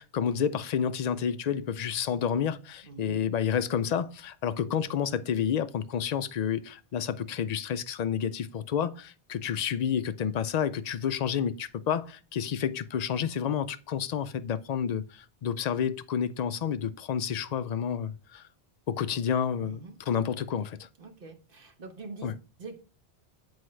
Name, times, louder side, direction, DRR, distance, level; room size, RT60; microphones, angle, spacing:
voice 1, 0.0-15.0 15.4-18.4 18.9-19.8 20.1-20.8 22.2-22.3, left 8 dB, 55° left, 0.4 m, -30 dB
voice 2, 2.8-3.2 19.6-20.0 21.0-22.8, right 4 dB, 55° right, 1.3 m, -45 dB
7.9 x 4.6 x 3.2 m
omnidirectional pair, 1.1 m